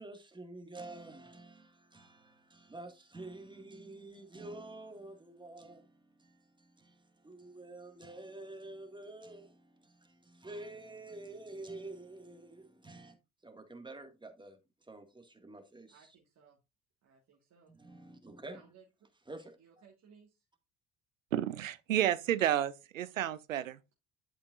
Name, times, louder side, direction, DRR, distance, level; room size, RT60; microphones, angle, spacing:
voice 1, 0.0-13.2 13.4-14.6 14.9-16.2 17.7-18.7 19.3-19.5, right 2 dB, 10° right, 1.9 m, -49 dB
voice 2, 15.9-16.6 17.0-17.7 18.5-18.8 19.6-20.4, right 6 dB, 40° right, 1.8 m, -61 dB
voice 3, 21.3-23.8, right 11 dB, 80° right, 0.6 m, -31 dB
11.5 x 5.1 x 2.5 m
figure-of-eight pair, 55°, 39 cm